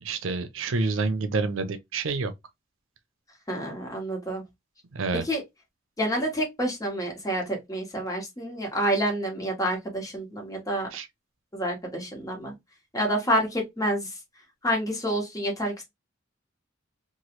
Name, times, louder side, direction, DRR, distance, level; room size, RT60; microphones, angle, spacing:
voice 1, 0.0-2.3 4.9-5.2 10.9-11.1, right 3 dB, 85° right, 0.6 m, -28 dB
voice 2, 3.5-4.4 5.1-5.4 6.0-10.9 11.5-12.5 12.9-14.1 14.6-15.8, equal, 20° left, 1.1 m, -28 dB
3.0 x 2.4 x 2.9 m
head